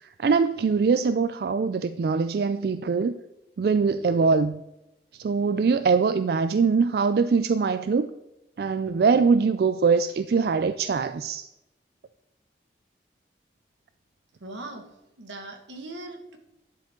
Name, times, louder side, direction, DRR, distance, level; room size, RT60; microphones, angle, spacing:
voice 1, 0.2-3.2 3.6-4.6 5.2-8.1 8.6-11.5, right 5 dB, 55° right, 11 dB, 0.3 m, -22 dB
voice 2, 14.4-14.9 15.2-16.4, right 2 dB, 85° right, 4 dB, 1.6 m, -39 dB
11.5 x 7.5 x 3.7 m, 0.93 s
head